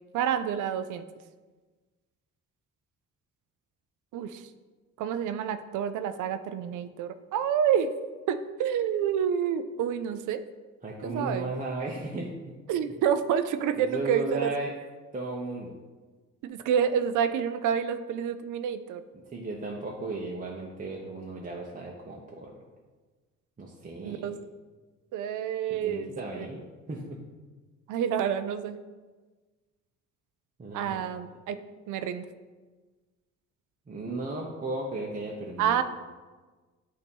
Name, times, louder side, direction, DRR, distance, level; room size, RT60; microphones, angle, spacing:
voice 1, 0.1-1.0 4.1-4.5 5.0-7.9 8.3-10.4 11.0-11.5 12.7-14.5 16.4-19.0 24.0-24.4 25.1-26.1 27.9-28.8 30.7-31.6 31.9-32.3 35.6-35.8, right 8 dB, 80° right, 11 dB, 0.5 m, -28 dB
voice 2, 10.8-12.5 13.8-14.7 15.1-15.7 19.3-22.7 23.6-24.3 25.7-26.6 26.9-27.2 30.6-31.0 33.9-35.8, right 2 dB, 25° right, -3 dB, 0.8 m, -35 dB
8.2 x 2.8 x 5.3 m, 1.3 s
cardioid pair, 90°, 30 cm